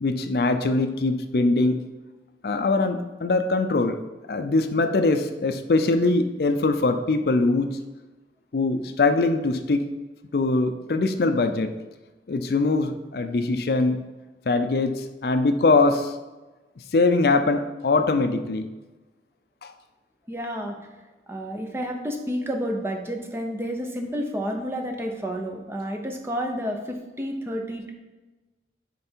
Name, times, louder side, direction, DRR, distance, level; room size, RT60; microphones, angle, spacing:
voice 1, 0.0-1.8 2.4-4.0 4.3-7.8 8.5-9.9 10.3-11.7 12.3-14.0 14.5-16.2 16.9-18.7 19.6-19.7, left 3 dB, 60° left, 8 dB, 0.4 m, -22 dB
voice 2, 20.3-20.9 21.3-27.9, equal, 15° right, 2 dB, 0.7 m, -30 dB
10.0 x 3.4 x 4.4 m, 1.2 s
head